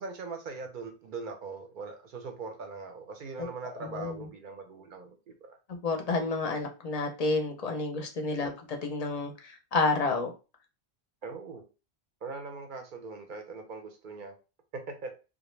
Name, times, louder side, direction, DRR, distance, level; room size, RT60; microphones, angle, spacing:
voice 1, 0.0-5.6 8.4-8.5 11.2-11.7 12.2-14.4 14.7-15.1, right 4 dB, 60° right, 5 dB, 0.6 m, -41 dB
voice 2, 3.8-4.2 5.8-8.5 8.8-9.3 9.7-10.3, left 3 dB, 50° left, 3 dB, 0.5 m, -29 dB
2.3 x 2.0 x 3.0 m, 0.31 s
omnidirectional pair, 1.0 m